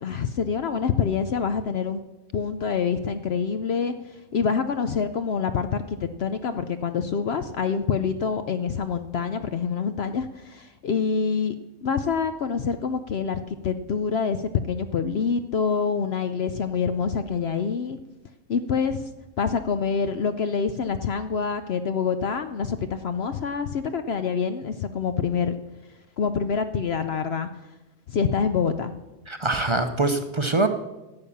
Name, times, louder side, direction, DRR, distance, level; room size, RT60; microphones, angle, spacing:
voice 1, 0.0-2.0 2.3-11.5 11.8-18.0 18.5-19.1 19.4-25.6 26.2-27.5 28.1-28.9, left 6 dB, 60° left, 9 dB, 0.7 m, -26 dB
voice 2, 29.3-30.7, right 2 dB, 35° right, 7 dB, 0.4 m, -23 dB
12.0 x 8.4 x 7.1 m, 1.1 s
omnidirectional pair, 1.5 m